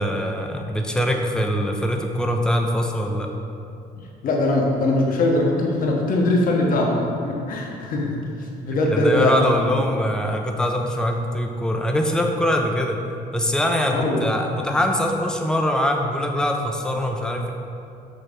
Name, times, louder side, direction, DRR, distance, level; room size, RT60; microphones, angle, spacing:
voice 1, 0.0-3.3 8.7-13.1 13.3-17.5, equal, 5° left, 2 dB, 0.6 m, -23 dB
voice 2, 3.9-8.2 8.6-9.8 13.9-14.2, left 2 dB, 55° left, 0 dB, 1.1 m, -21 dB
6.8 x 3.0 x 5.1 m, 2.6 s
cardioid pair, 110°, 17 cm